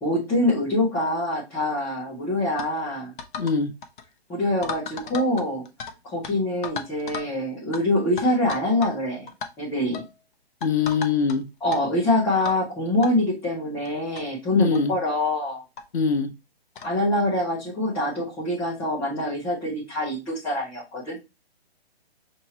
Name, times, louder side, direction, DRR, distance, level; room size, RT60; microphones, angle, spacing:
voice 1, 0.0-3.1 4.3-5.6 6.0-9.3 9.6-10.0 11.6-15.6 16.8-21.2, left 1 dB, 5° left, -9 dB, 0.6 m, -25 dB
sound 1, 2.6-2.7 3.2-3.6 3.8-4.0 4.6-5.9 6.2-6.3 6.6-7.3 7.7-7.8 8.2-9.0 9.3-9.5 9.9-10.1 10.6-11.4 11.7-11.8 12.5-12.6 13.0-13.1 13.9-14.0 14.2-14.3 14.7-14.9 15.8-15.9 16.8-17.0, left 5 dB, 50° left, 0.7 m, -35 dB
voice 2, 3.4-3.7 10.6-11.4 14.6-14.9 15.9-16.3, left 5 dB, 85° left, 7 dB, 0.9 m, -23 dB
5.3 x 2.9 x 2.8 m, 0.26 s
hypercardioid pair, 155°, 32 cm